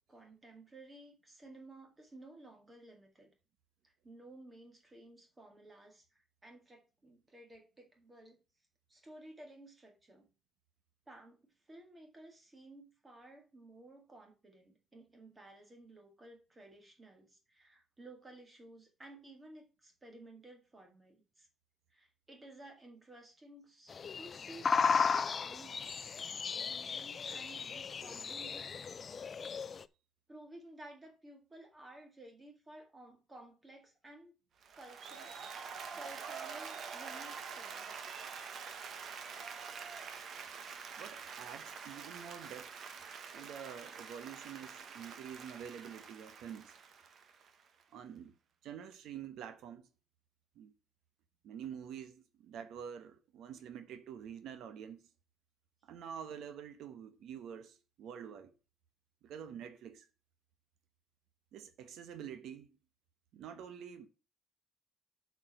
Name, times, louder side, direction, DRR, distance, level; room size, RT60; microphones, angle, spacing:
voice 1, 0.1-3.3 3.8-8.4 8.9-10.3 11.1-21.5 21.9-28.7 30.3-34.3 34.8-35.3 35.9-38.1, right 1 dB, 15° right, 2.1 m, -55 dB
sound 1, 23.9-29.8, left 6 dB, 30° left, 0.3 m, -35 dB
Applause, 34.6-47.8, right 6 dB, 50° right, 1.0 m, -46 dB
voice 2, 41.0-42.7 43.3-46.8 47.9-48.3 48.6-49.9 50.6-50.7 51.4-55.1 55.8-58.5 59.2-60.1 61.5-62.7 63.3-64.1, right 8 dB, 85° right, 0.9 m, -47 dB
7.7 x 4.9 x 5.9 m
cardioid pair, 175°, 0 cm